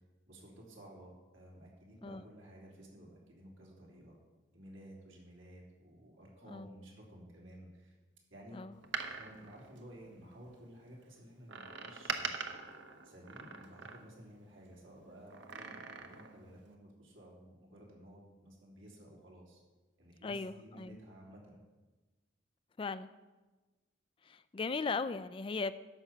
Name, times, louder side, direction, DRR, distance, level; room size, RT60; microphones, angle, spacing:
voice 1, 0.3-4.2 4.5-7.9 8.3-8.6 9.0-12.5 13.0-19.6 20.0-21.6, right 1 dB, 80° right, -3 dB, 3.1 m, -54 dB
Door, 8.7-10.5 11.5-14.4 15.3-16.4 16.7-16.8, right 5 dB, 65° right, 0.9 m, -43 dB
voice 2, 20.2-21.0 22.8-23.1 24.2-25.7, left 4 dB, 25° left, 13 dB, 0.3 m, -38 dB
13.5 x 6.0 x 5.8 m, 1.2 s
head